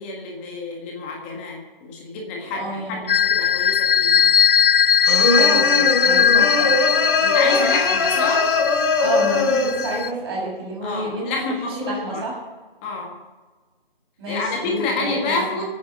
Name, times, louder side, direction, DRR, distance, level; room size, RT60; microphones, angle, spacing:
voice 1, 0.0-4.3 7.2-8.5 10.8-12.2 12.8-13.1 14.3-15.6, left 3 dB, 10° left, 0 dB, 1.5 m, -28 dB
voice 2, 2.5-3.1 5.3-6.7 9.0-12.4 14.2-15.6, right 1 dB, 25° right, -4 dB, 6.7 m, -29 dB
sound 1, 3.1-10.1, left 8 dB, 65° left, 0.5 m, -19 dB
sound 2, 5.1-9.9, left 2 dB, 30° left, 2.5 m, -21 dB
23.0 x 9.5 x 5.5 m, 1.3 s
figure-of-eight pair, 165°, 30 cm